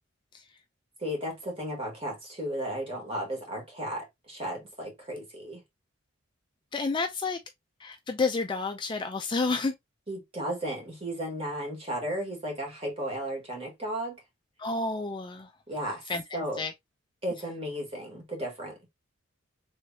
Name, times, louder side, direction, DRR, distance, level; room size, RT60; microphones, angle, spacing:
voice 1, 1.0-5.6 10.1-14.2 15.7-16.0 16.3-16.6 17.2-18.8, equal, 30° right, 1.6 m, -34 dB
voice 2, 6.7-7.4 7.8-9.7 14.6-15.5 16.1-16.2 16.6-16.7, left 3 dB, 25° left, 0.3 m, -29 dB
3.4 x 3.2 x 2.7 m
head